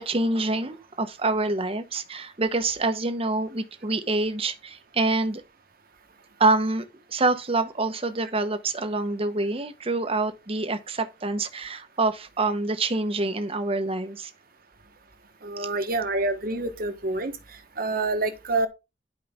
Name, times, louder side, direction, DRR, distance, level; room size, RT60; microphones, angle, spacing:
voice 1, 0.0-5.4 6.4-14.3 15.6-15.7, right 2 dB, 30° right, 1.0 m, -26 dB
voice 2, 15.4-17.3 17.8-18.7, right 2 dB, 50° right, 1.3 m, -27 dB
11.0 x 5.0 x 3.6 m
head